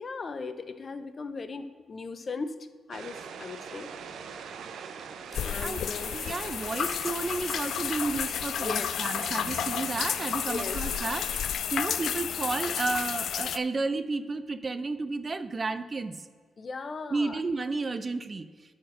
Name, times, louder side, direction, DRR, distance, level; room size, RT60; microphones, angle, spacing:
voice 1, 0.0-2.6 2.9-3.9 5.4-6.1 8.6-8.9 10.5-10.8 16.6-17.4, left 4 dB, 45° left, 11 dB, 0.7 m, -37 dB
sound 1, 2.9-11.4, right 6 dB, 75° right, 0.7 m, -43 dB
sound 2, 5.3-13.6, left 9 dB, 75° left, 0.3 m, -31 dB
voice 2, 5.3-5.8 6.1-16.3 17.1-18.5, right 3 dB, 35° right, 12 dB, 0.6 m, -32 dB
10.0 x 4.4 x 6.4 m, 1.6 s
cardioid pair, 70°, 0 cm